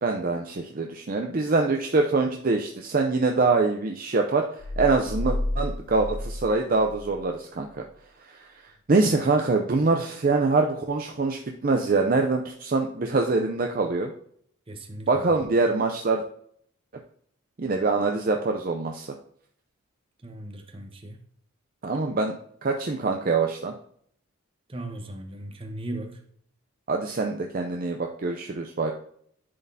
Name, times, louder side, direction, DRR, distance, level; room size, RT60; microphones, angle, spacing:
voice 1, 0.0-4.5 4.8-7.7 8.3-8.4 8.9-14.1 15.1-16.2 17.6-19.1 21.8-23.7 26.9-28.9, right 3 dB, 40° right, 3 dB, 0.5 m, -24 dB
sound 1, 4.6-7.3, left 1 dB, 90° left, 0.7 m, -31 dB
voice 2, 14.7-15.4 20.2-21.2 24.7-26.2, right 1 dB, 25° right, 4 dB, 1.0 m, -37 dB
10.5 x 4.1 x 2.7 m, 0.64 s
head